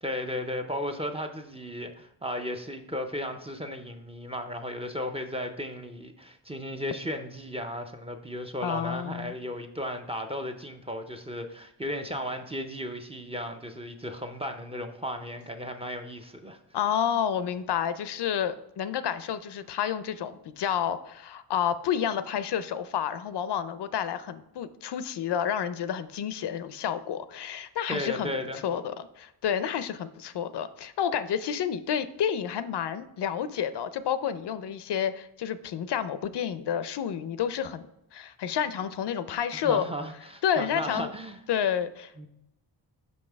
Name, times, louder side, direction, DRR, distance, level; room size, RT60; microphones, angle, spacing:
voice 1, 0.0-16.6 27.9-28.6 39.5-41.4 42.2-42.3, equal, 15° right, 5 dB, 0.4 m, -35 dB
voice 2, 8.6-9.3 16.7-28.3 28.6-37.9 38.1-39.8 40.4-41.1 41.5-42.1, left 8 dB, 70° left, 13 dB, 0.5 m, -30 dB
5.6 x 5.3 x 3.4 m, 0.84 s
wide cardioid pair, 125°, 43 cm